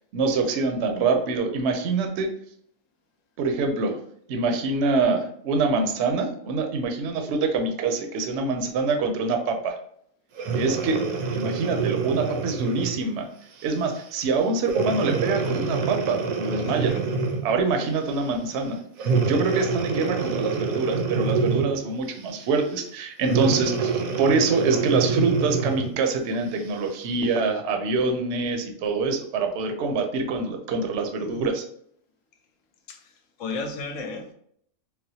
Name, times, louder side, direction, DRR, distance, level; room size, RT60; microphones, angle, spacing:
voice 1, 0.1-2.3 3.4-4.0 4.3-9.8 10.5-11.0 11.3-13.3 13.6-17.1 17.4-23.9 24.2-31.6, right 3 dB, 65° right, 0.7 m, -25 dB
Breathing, 10.4-13.0 13.6-13.8 14.7-17.6 19.0-21.8 23.2-26.0 26.6-26.7, right 4 dB, 85° right, 1.0 m, -26 dB
voice 2, 16.6-17.0 31.2-31.5 32.9-33.1 33.4-34.3, left 3 dB, 70° left, 0.9 m, -34 dB
4.1 x 2.0 x 2.7 m
omnidirectional pair, 1.4 m